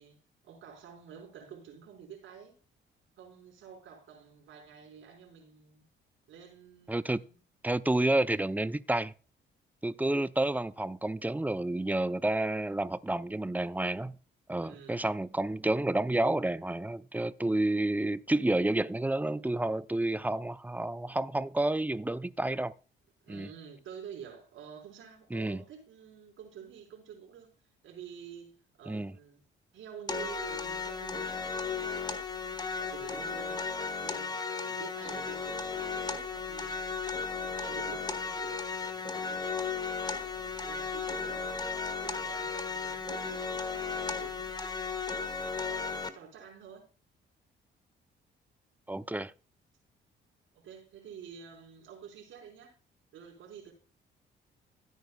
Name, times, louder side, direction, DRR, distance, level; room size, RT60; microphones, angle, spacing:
voice 1, 0.0-2.6 3.2-5.8 6.3-7.4 14.6-15.1 23.2-27.6 27.8-29.4 29.7-32.2 32.8-37.0 37.4-39.6 40.2-41.8 42.0-44.6 45.4-46.9 50.5-52.8 53.1-53.7, right 8 dB, 80° right, 4.8 m, -49 dB
voice 2, 6.9-7.2 7.6-9.1 9.8-14.1 14.5-22.7 23.3-23.5 25.3-25.6 28.9-29.1 48.9-49.3, right 2 dB, 10° right, 0.6 m, -30 dB
sound 1, 30.1-46.1, left 5 dB, 20° left, 1.5 m, -35 dB
16.0 x 9.4 x 2.3 m
cardioid pair, 90°, 20 cm